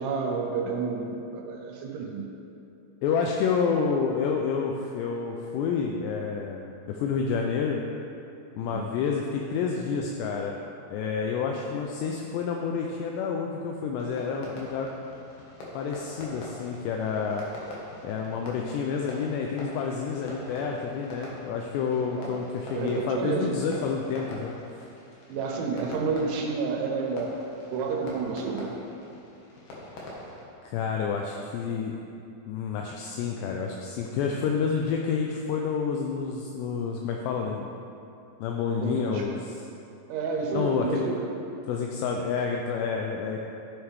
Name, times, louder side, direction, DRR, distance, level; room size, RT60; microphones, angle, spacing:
voice 1, 0.0-2.3 8.6-8.8 22.1-23.6 25.3-27.4 27.7-28.7 38.8-39.3 40.1-41.3, right 4 dB, 80° right, 0 dB, 3.5 m, -30 dB
voice 2, 3.0-7.8 8.6-10.6 10.9-14.9 15.7-17.5 18.0-24.5 30.6-31.9 32.5-37.7 38.4-39.7 40.5-41.0 41.7-43.4, left 6 dB, 85° left, 1 dB, 2.5 m, -29 dB
Fireworks, 14.0-30.5, left 1 dB, 60° left, 2.8 m, -44 dB
13.0 x 7.9 x 3.5 m, 2.7 s
omnidirectional pair, 5.4 m